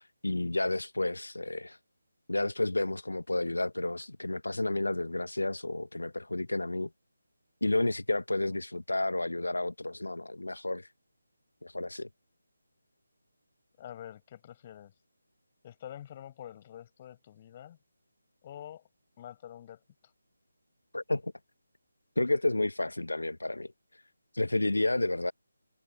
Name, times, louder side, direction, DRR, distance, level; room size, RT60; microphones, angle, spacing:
voice 1, 0.0-1.8 2.3-6.9 7.6-10.9 11.6-12.1 20.9-21.3 22.2-24.0 24.3-25.3, left 2 dB, 70° left, 1.2 m, -31 dB
voice 2, 13.8-14.9 15.6-17.8 18.4-18.8 19.2-20.1, left 11 dB, 25° left, 6.3 m, -47 dB
figure-of-eight pair, 155°, 0 cm